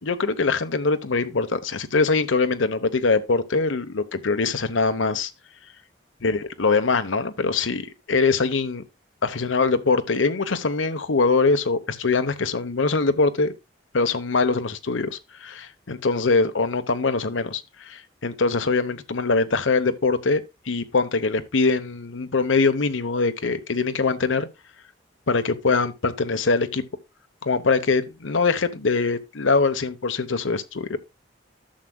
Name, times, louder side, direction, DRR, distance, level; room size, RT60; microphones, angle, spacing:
voice 1, 0.0-5.3 6.2-8.8 9.2-13.5 13.9-24.5 25.3-26.8 27.4-31.0, left 4 dB, 85° left, 0.9 m, -23 dB
11.5 x 7.4 x 2.3 m
head